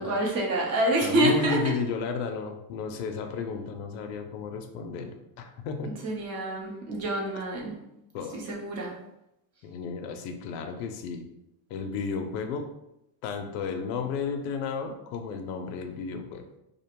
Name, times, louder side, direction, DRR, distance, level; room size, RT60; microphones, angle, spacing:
voice 1, 0.0-1.6 5.8-7.8 8.3-8.9, right 1 dB, 30° right, -2 dB, 0.7 m, -27 dB
voice 2, 1.0-5.9 8.1-8.4 9.6-11.2 11.7-12.7 13.2-16.4, left 5 dB, 65° left, 5 dB, 0.5 m, -33 dB
2.5 x 2.1 x 2.9 m, 0.85 s
cardioid pair, 150°, 50 cm